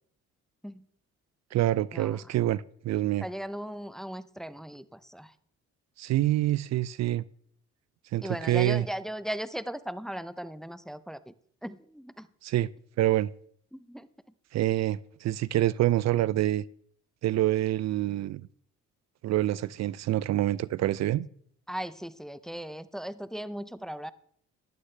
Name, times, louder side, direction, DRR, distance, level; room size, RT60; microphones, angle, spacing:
voice 1, 1.5-3.3 6.0-7.2 8.1-8.9 12.4-12.7 13.0-13.3 14.5-16.6 17.2-18.5 19.2-21.3, right 14 dB, 60° right, 0.4 m, -26 dB
voice 2, 3.2-5.3 8.2-11.3 11.6-12.3 13.7-14.1 21.7-24.1, right 1 dB, ahead, 0.6 m, -37 dB
15.0 x 11.5 x 3.3 m
cardioid pair, 90°, 30 cm